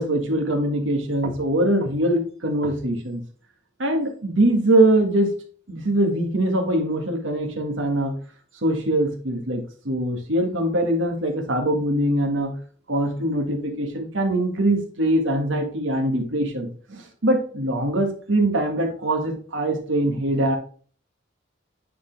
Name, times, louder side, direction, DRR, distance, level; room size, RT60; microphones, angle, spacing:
voice 1, 0.0-3.2 3.8-5.3 5.7-8.1 8.6-12.5 12.9-20.6, right 1 dB, 90° right, 4 dB, 1.7 m, -22 dB
9.4 x 4.1 x 3.4 m, 0.43 s
head